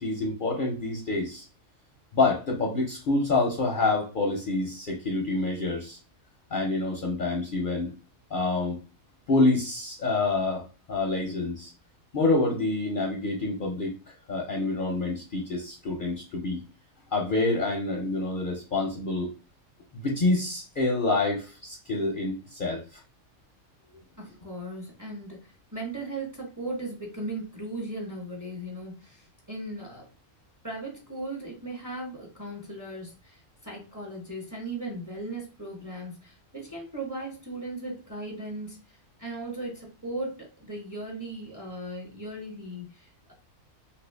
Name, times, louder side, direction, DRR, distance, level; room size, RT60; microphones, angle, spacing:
voice 1, 0.0-1.4 2.1-6.0 6.5-7.9 8.3-8.8 9.3-10.6 10.9-11.7 12.1-16.6 17.1-19.3 19.9-23.0, left 3 dB, 55° left, 0 dB, 0.6 m, -27 dB
voice 2, 24.2-30.0 30.6-43.3, right 2 dB, 15° right, -2 dB, 0.7 m, -37 dB
2.8 x 2.6 x 3.2 m, 0.34 s
omnidirectional pair, 1.3 m